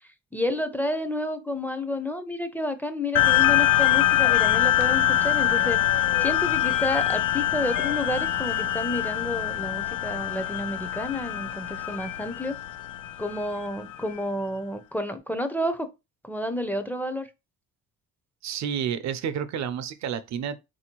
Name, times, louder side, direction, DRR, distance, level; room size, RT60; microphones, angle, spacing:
voice 1, 0.3-5.8 6.2-12.6 13.2-15.9 16.2-17.3, left 1 dB, 5° left, 0.5 m, -30 dB
sound 1, 3.2-14.0, left 12 dB, 85° left, 0.5 m, -24 dB
voice 2, 18.4-20.6, right 8 dB, 65° right, 0.5 m, -30 dB
3.8 x 2.7 x 2.9 m
cardioid pair, 90°, 30 cm